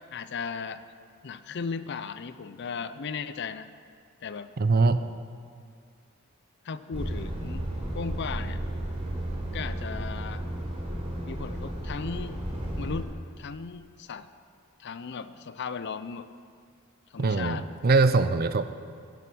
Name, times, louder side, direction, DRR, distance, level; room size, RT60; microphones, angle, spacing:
voice 1, 0.1-0.8 1.2-3.7 4.2-4.5 6.6-7.6 7.9-8.6 9.5-10.4 11.3-12.3 12.8-13.1 13.4-14.3 14.8-16.3 17.1-17.7, left 5 dB, 50° left, 13 dB, 0.5 m, -36 dB
voice 2, 4.6-5.0 17.2-18.6, right 3 dB, 45° right, 12 dB, 0.5 m, -22 dB
Truck, 6.9-13.0, right 1 dB, 25° right, 3.8 m, -33 dB
11.5 x 9.5 x 6.2 m, 2.2 s
head